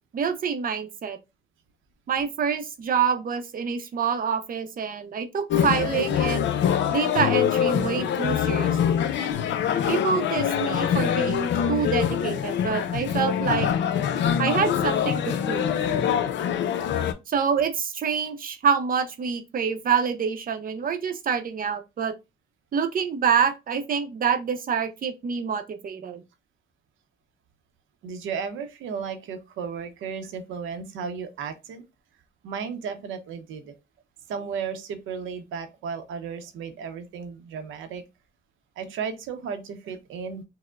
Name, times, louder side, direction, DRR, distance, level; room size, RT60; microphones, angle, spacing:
voice 1, 0.1-1.2 2.1-6.5 6.9-9.0 9.9-13.7 14.4-15.7 17.3-22.1 22.7-26.2, right 7 dB, 45° right, 0.6 m, -26 dB
sound 1, 5.5-17.1, left 9 dB, 65° left, 0.5 m, -24 dB
voice 2, 28.0-31.8 32.4-33.7 34.3-38.0 38.8-40.4, right 6 dB, 85° right, 0.7 m, -34 dB
4.4 x 2.1 x 2.2 m
cardioid pair, 90°, 20 cm